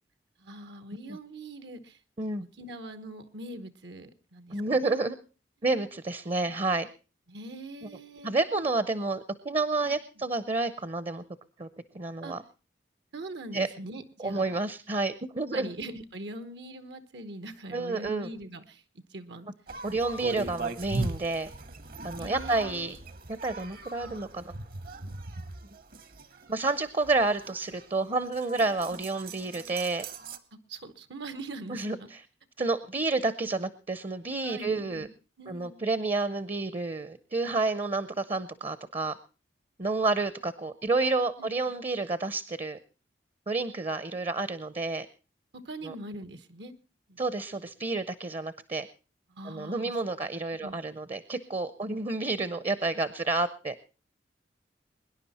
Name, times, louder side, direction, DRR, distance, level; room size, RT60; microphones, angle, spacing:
voice 1, 0.4-2.0 2.4-4.9 7.3-8.3 9.8-10.0 12.2-12.3 13.1-14.6 15.5-18.8 19.1-19.5 20.3-20.5 22.1-22.9 24.0-24.2 28.6-29.0 30.7-32.1 34.4-35.1 35.4-35.8 41.4-41.7 45.6-46.7 47.1-47.2 49.3-50.3 50.6-50.8, right 2 dB, 80° right, 11 dB, 1.1 m, -42 dB
voice 2, 4.5-5.2 5.6-6.9 8.2-11.2 11.6-11.7 11.9-12.4 13.5-13.7 14.2-15.7 17.7-18.3 19.8-21.5 22.0-23.0 23.3-24.4 26.5-30.0 31.7-32.0 32.6-35.1 35.5-39.2 39.8-42.8 43.5-45.1 45.8-45.9 47.2-48.9 49.5-53.7, right 3 dB, 35° right, 15 dB, 0.6 m, -30 dB
sound 1, 19.7-30.4, right 3 dB, 55° right, 1.0 m, -39 dB
23.0 x 10.5 x 4.2 m, 0.35 s
head